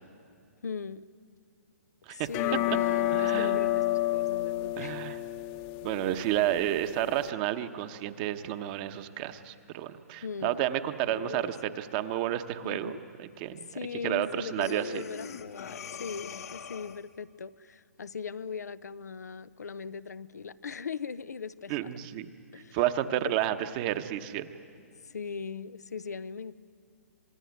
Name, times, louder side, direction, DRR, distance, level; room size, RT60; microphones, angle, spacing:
voice 1, 0.6-1.1 2.1-5.2 6.1-6.4 10.2-10.6 11.1-11.7 12.6-13.0 13.7-22.0 22.5-22.8 23.2-23.4 25.0-26.5, left 5 dB, 90° left, 15 dB, 0.7 m, -39 dB
sound 1, 2.3-7.3, left 15 dB, 30° left, 0.9 m, -30 dB
voice 2, 3.1-3.6 4.8-5.2 5.8-12.9 13.2-13.7 14.0-15.0 21.7-22.3 22.7-24.5, right 12 dB, 35° right, 10 dB, 1.1 m, -31 dB
Breathing, 14.6-17.2, left 7 dB, 65° left, 1.0 m, -42 dB
26.5 x 20.0 x 9.5 m, 2.4 s
hypercardioid pair, 145°, 9 cm